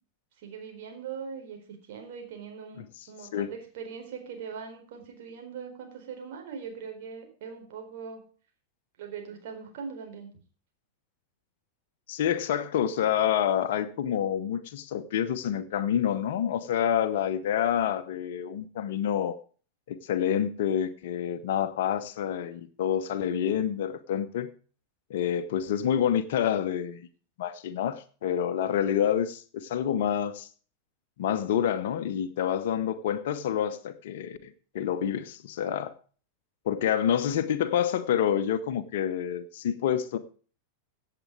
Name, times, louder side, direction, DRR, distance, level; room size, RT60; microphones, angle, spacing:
voice 1, 0.4-8.2 9.0-10.3, right 6 dB, 50° right, 4 dB, 4.3 m, -41 dB
voice 2, 12.1-19.4 19.9-24.5 25.1-27.1 27.4-30.5 31.2-35.9 36.6-40.2, left 9 dB, 55° left, 11 dB, 1.2 m, -28 dB
16.5 x 8.0 x 4.8 m, 0.39 s
figure-of-eight pair, 90°, 0 cm